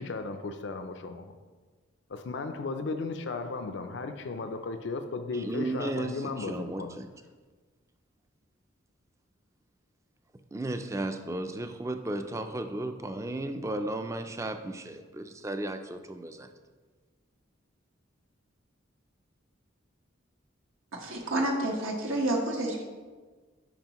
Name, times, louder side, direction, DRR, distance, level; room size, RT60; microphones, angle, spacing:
voice 1, 0.0-1.4 2.1-7.0, left 3 dB, 60° left, 0.4 m, -35 dB
voice 2, 5.3-7.1 10.5-16.5, right 2 dB, 15° right, 0.3 m, -34 dB
voice 3, 20.9-22.8, right 1 dB, 90° right, 1.3 m, -29 dB
9.0 x 4.9 x 3.0 m
head